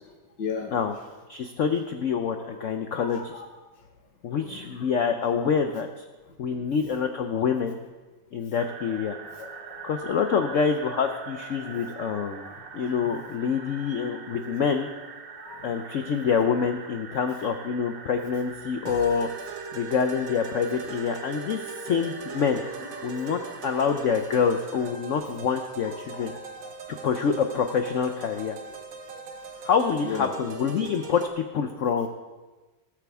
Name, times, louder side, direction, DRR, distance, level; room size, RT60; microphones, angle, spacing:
voice 1, 0.1-0.8 2.4-2.6 2.9-3.5 4.3-4.9 6.5-6.7 9.3-10.2 11.7-11.8 12.2-12.6 13.0-13.1 14.3-14.5 15.4-16.1 16.6-16.7 21.4-21.6 22.3-23.4 25.9-26.8 29.1-29.4 30.0-30.3 30.7-30.8, left 6 dB, 70° left, 1 dB, 2.1 m, -39 dB
voice 2, 1.3-3.3 4.2-5.9 6.4-7.8 8.3-9.2 9.8-12.5 12.7-14.9 15.6-19.3 19.7-22.6 23.0-26.3 26.9-28.6 29.6-32.1, left 6 dB, 90° left, 6 dB, 0.6 m, -26 dB
sound 1, 8.5-24.9, right 5 dB, 75° right, 0.5 m, -43 dB
sound 2, 18.8-31.3, right 4 dB, 55° right, 1.1 m, -40 dB
19.0 x 8.4 x 3.5 m, 1.2 s
omnidirectional pair, 2.1 m